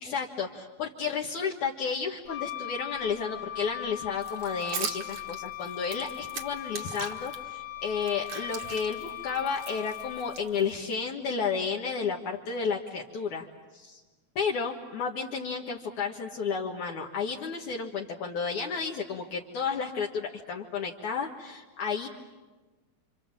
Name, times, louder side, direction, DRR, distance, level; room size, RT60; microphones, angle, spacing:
voice 1, 0.0-13.5 13.7-14.0 14.4-22.1, left 5 dB, 60° left, -1 dB, 2.7 m, -32 dB
Wind instrument woodwind instrument, 2.3-10.6, left 13 dB, 80° left, 3.3 m, -39 dB
sound 1, 4.2-7.4 7.8-10.9, right 6 dB, 55° right, 2.4 m, -40 dB
29.5 x 26.5 x 7.4 m, 1.2 s
omnidirectional pair, 4.2 m